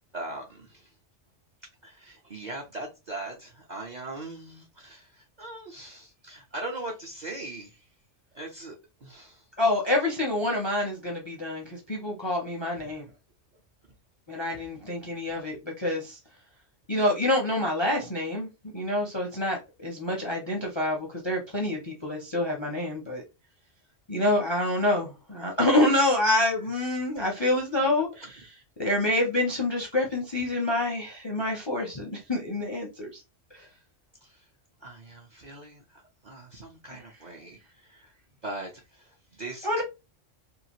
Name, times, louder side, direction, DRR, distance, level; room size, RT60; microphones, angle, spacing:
voice 1, 0.1-0.9 1.8-7.9 8.3-8.7 9.0-9.4 12.8-13.0 15.3-15.4 27.2-27.3 34.2-34.5 34.8-38.1 38.4-39.8, right 2 dB, 50° right, 0.6 m, -40 dB
voice 2, 9.6-13.0 14.3-16.2 16.9-18.5 18.7-23.2 24.1-28.4 28.8-33.2 33.5-33.6 39.6-39.8, left 1 dB, 35° left, 0.5 m, -27 dB
2.8 x 2.4 x 2.8 m
omnidirectional pair, 1.3 m